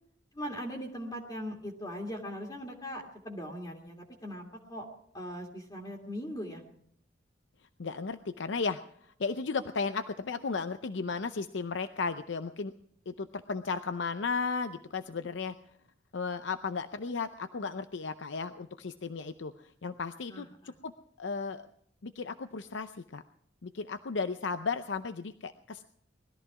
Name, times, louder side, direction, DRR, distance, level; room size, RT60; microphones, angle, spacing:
voice 1, 0.3-4.9 5.1-6.6 20.3-20.7, equal, 20° left, -1 dB, 2.0 m, -40 dB
voice 2, 7.8-12.7 13.1-15.5 16.1-19.5 19.8-20.9 21.2-21.6 22.0-23.2 23.6-25.8, left 4 dB, 75° left, 10 dB, 0.6 m, -35 dB
20.5 x 13.5 x 4.8 m, 0.67 s
head